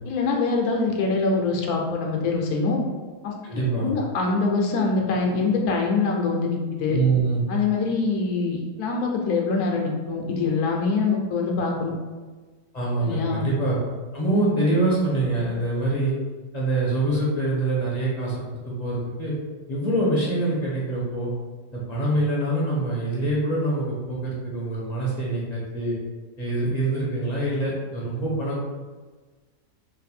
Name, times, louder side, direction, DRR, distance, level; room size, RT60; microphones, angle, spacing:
voice 1, 0.0-2.8 3.2-3.3 3.8-7.0 7.5-11.9 13.0-13.5, left 4 dB, 70° left, 0 dB, 1.1 m, -24 dB
voice 2, 3.4-3.9 6.9-7.5 12.7-13.8 14.1-16.1 16.5-19.3 19.7-21.3 21.7-26.0 26.4-28.6, right 2 dB, 35° left, -6 dB, 0.7 m, -25 dB
3.3 x 2.6 x 4.2 m, 1.3 s
omnidirectional pair, 1.8 m